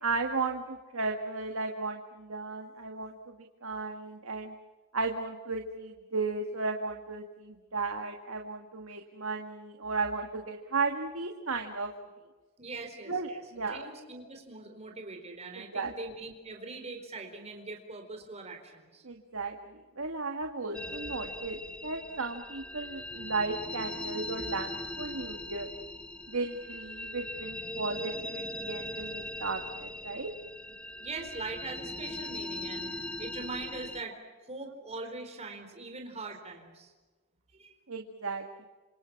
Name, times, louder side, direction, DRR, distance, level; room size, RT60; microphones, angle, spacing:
voice 1, 0.0-3.3 3.6-4.5 4.9-11.9 13.1-13.9 15.6-15.9 19.0-25.7 26.3-30.3 37.9-38.7, right 3 dB, 70° right, 4 dB, 1.9 m, -35 dB
voice 2, 12.6-19.0 31.0-34.2 34.5-36.9 37.5-37.7, right 3 dB, 30° right, 3 dB, 4.3 m, -42 dB
sound 1, 20.7-34.0, left 1 dB, 5° left, 0.8 m, -40 dB
28.5 x 26.5 x 6.0 m, 1.3 s
head